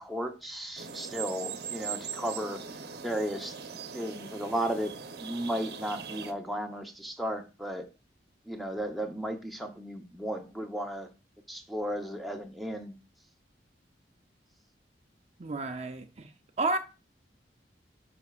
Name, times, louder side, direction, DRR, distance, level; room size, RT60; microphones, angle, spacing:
voice 1, 0.0-2.6 3.0-3.6 3.9-7.9 8.5-11.1 11.5-12.9, equal, ahead, 0.8 m, -34 dB
sound 1, 0.8-6.3, right 6 dB, 60° right, 0.9 m, -40 dB
voice 2, 15.4-16.3 16.6-16.8, right 2 dB, 35° right, 0.6 m, -31 dB
9.4 x 5.8 x 2.4 m
head